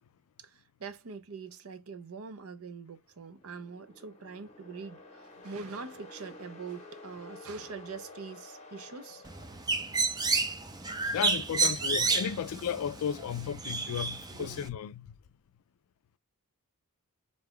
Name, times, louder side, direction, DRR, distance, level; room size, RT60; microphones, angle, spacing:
voice 1, 0.4-9.2 11.1-11.3 12.3-12.4 13.9-14.1 14.3-14.6, right 5 dB, 70° right, 0.6 m, -43 dB
sound 1, 3.2-10.2, left 2 dB, 30° left, 0.8 m, -51 dB
Bird, 9.3-14.7, right 4 dB, 15° right, 0.4 m, -31 dB
voice 2, 11.1-15.1, left 8 dB, 70° left, 0.3 m, -34 dB
3.8 x 2.2 x 3.6 m
head